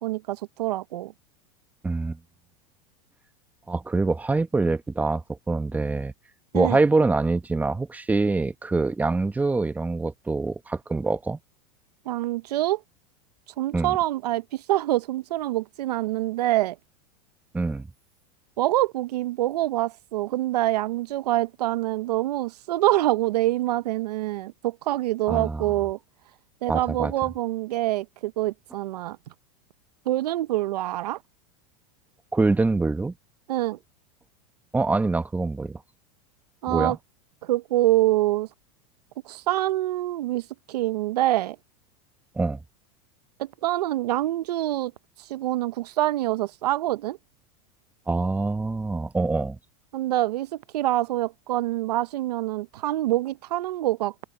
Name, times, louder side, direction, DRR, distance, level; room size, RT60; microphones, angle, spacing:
voice 1, 0.0-1.1 6.5-6.8 12.1-12.8 13.6-16.8 18.6-26.0 26.6-29.2 30.1-31.2 33.5-33.8 36.6-37.0 37.4-38.5 39.2-41.6 43.4-44.9 45.2-47.2 49.9-54.1, right 15 dB, 90° right, 0.7 m, -25 dB
voice 2, 1.8-2.2 3.7-6.1 6.5-11.4 13.7-13.9 17.5-17.9 25.3-25.7 26.7-27.1 32.3-33.1 34.7-35.8 36.7-37.0 42.4-42.6 48.1-49.6, right 3 dB, 10° right, 0.9 m, -25 dB
open air
supercardioid pair, 130°, 20 cm